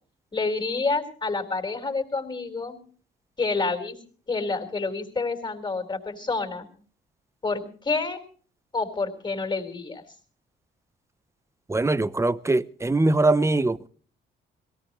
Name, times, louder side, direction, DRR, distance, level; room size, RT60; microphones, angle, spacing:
voice 1, 0.3-2.8 3.4-4.0 4.3-6.7 7.4-8.2 8.7-10.0, left 3 dB, 25° left, 4.4 m, -28 dB
voice 2, 11.7-13.9, right 2 dB, 15° right, 0.8 m, -22 dB
23.0 x 17.5 x 3.1 m
cardioid pair, 90°, 20 cm